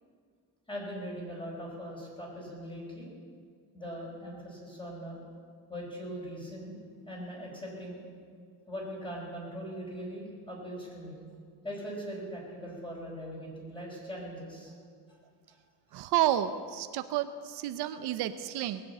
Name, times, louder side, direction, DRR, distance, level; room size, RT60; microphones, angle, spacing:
voice 1, 0.7-3.1 3.7-5.2 5.7-6.8 7.0-8.0 8.7-11.2 11.6-14.7, equal, 10° left, -3 dB, 4.7 m, -40 dB
voice 2, 15.9-18.8, right 12 dB, 75° right, 10 dB, 0.8 m, -30 dB
19.5 x 7.7 x 8.3 m, 2.1 s
cardioid pair, 135°, 40 cm